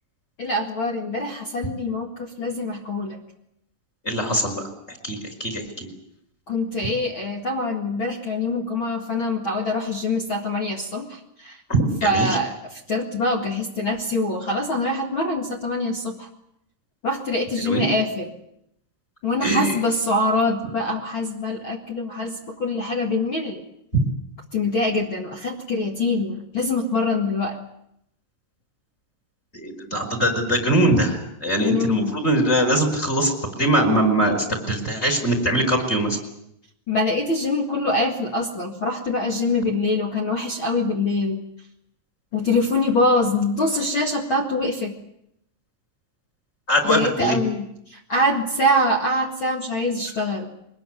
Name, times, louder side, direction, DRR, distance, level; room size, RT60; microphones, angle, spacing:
voice 1, 0.4-3.2 6.5-11.6 12.0-16.3 17.0-18.3 19.2-23.6 24.5-27.6 31.6-32.2 36.9-41.4 42.3-45.0 46.8-50.5, left 2 dB, 40° left, -1 dB, 2.4 m, -24 dB
voice 2, 4.0-5.9 11.7-12.3 17.6-17.8 19.4-19.8 29.5-36.2 46.7-47.4, right 1 dB, 15° left, 6 dB, 4.9 m, -22 dB
23.0 x 20.5 x 9.6 m, 0.76 s
omnidirectional pair, 4.0 m